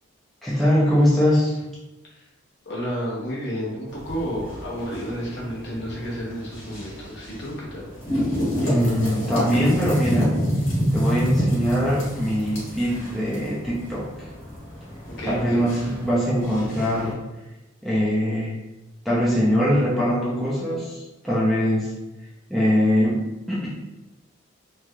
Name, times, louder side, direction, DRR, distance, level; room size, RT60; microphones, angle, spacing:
voice 1, 0.4-1.6 8.6-10.4 10.9-14.3 15.2-17.2 17.8-18.6 19.0-23.7, equal, ahead, -8 dB, 0.5 m, -22 dB
voice 2, 2.7-7.9 15.2-15.7, equal, 55° left, -5 dB, 0.9 m, -31 dB
sound 1, 3.9-17.1, equal, 75° left, 1.3 m, -28 dB
3.1 x 2.7 x 2.3 m, 1.0 s
head